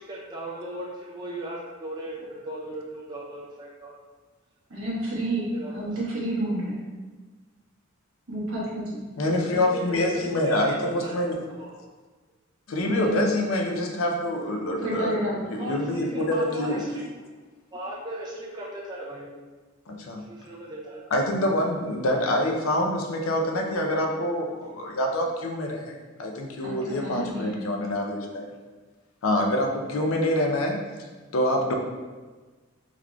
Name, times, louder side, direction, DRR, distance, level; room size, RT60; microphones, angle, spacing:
voice 1, 0.0-4.0 5.5-6.0 9.4-11.3 11.6-11.8 14.8-14.9 15.6-17.3 17.7-19.4 20.3-21.0, right 1 dB, 20° right, -5 dB, 0.5 m, -37 dB
voice 2, 4.7-6.8 8.3-9.0 12.9-13.5 14.8-15.4 26.6-26.7 27.0-27.6, right 1 dB, 70° right, -6 dB, 1.1 m, -29 dB
voice 3, 9.2-11.4 12.7-15.2 15.5-16.8 19.9-20.3 21.1-28.5 29.2-30.8 31.3-31.7, left 1 dB, 75° left, 2 dB, 0.5 m, -26 dB
3.9 x 3.0 x 2.3 m, 1.3 s
head